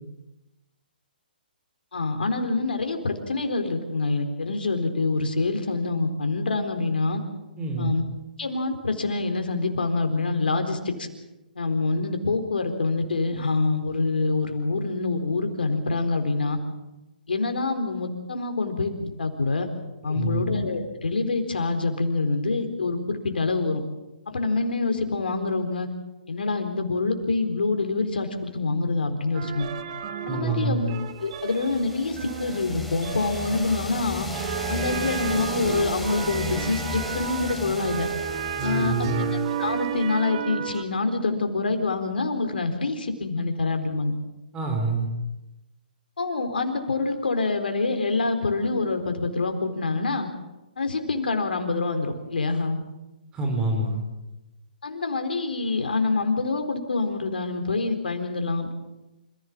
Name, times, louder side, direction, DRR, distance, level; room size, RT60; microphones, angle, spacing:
voice 1, 1.9-7.2 7.8-8.0 8.4-11.1 11.6-16.6 17.3-19.7 20.0-23.8 24.3-25.9 26.3-29.7 30.3-30.9 31.2-34.3 34.7-38.1 38.6-39.3 39.6-44.1 46.2-50.3 50.8-52.8 54.8-58.7, left 3 dB, 80° left, 6 dB, 4.1 m, -26 dB
voice 2, 7.6-7.9 20.1-20.4 30.3-30.8 38.6-39.3 44.5-45.1 53.3-54.0, right 3 dB, 15° right, 2 dB, 4.5 m, -27 dB
sound 1, 29.3-40.8, right 9 dB, 40° right, 1.7 m, -33 dB
sound 2, 31.3-40.1, left 2 dB, ahead, 3.2 m, -36 dB
27.5 x 16.0 x 7.5 m, 1.0 s
hypercardioid pair, 140°, 5 cm